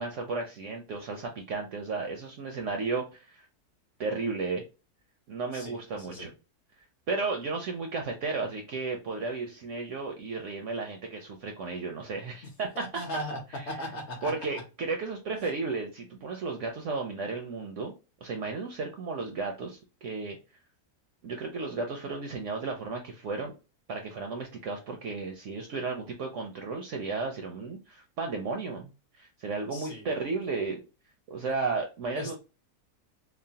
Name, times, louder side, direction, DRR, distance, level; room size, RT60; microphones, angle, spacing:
voice 1, 0.0-3.5 4.0-4.6 5.3-6.3 7.1-12.8 13.5-13.8 14.2-17.9 18.2-20.4 21.2-23.5 23.9-30.8 31.3-32.4, right 4 dB, 70° right, 3 dB, 0.7 m, -34 dB
voice 2, 5.5-6.3 12.8-13.4 13.7-14.3 29.7-30.0 32.2-32.4, equal, 55° left, 1 dB, 0.9 m, -37 dB
3.0 x 2.1 x 2.7 m, 0.30 s
omnidirectional pair, 1.7 m